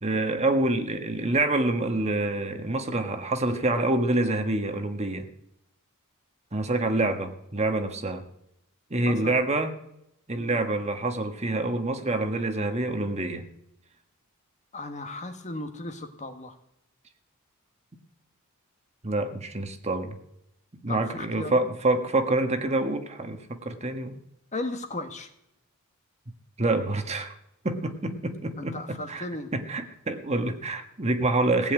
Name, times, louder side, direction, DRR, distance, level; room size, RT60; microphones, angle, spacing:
voice 1, 0.0-5.3 6.5-8.2 8.9-9.7 10.3-13.5 19.0-20.2 20.8-24.2 26.6-27.3 27.6-29.2 29.5-31.7, right 2 dB, 30° right, 6 dB, 1.3 m, -27 dB
voice 2, 14.7-16.6 20.9-21.7 24.5-25.3 28.6-29.5, left 2 dB, 30° left, 7 dB, 1.5 m, -36 dB
17.0 x 7.0 x 9.0 m, 0.80 s
head